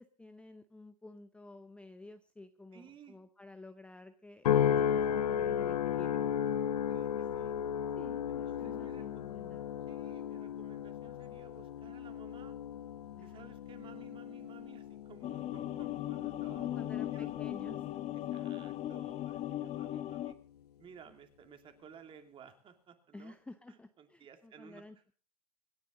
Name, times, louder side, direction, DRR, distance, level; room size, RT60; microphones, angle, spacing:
voice 1, 0.0-6.3 8.0-9.6 13.2-13.4 16.5-17.9 23.1-25.0, left 2 dB, 5° left, 9 dB, 0.7 m, -52 dB
voice 2, 2.7-3.2 6.8-7.6 8.3-9.2 9.9-12.6 13.2-17.3 18.3-20.4 20.8-23.3 23.7-24.9, right 7 dB, 25° right, 7 dB, 2.6 m, -56 dB
sound 1, 4.4-18.9 19.5-19.9, left 9 dB, 80° left, 0.7 m, -35 dB
sound 2, 15.2-20.3, left 13 dB, 35° left, 1.1 m, -38 dB
26.0 x 9.7 x 3.8 m, 0.37 s
hypercardioid pair, 110°, 20 cm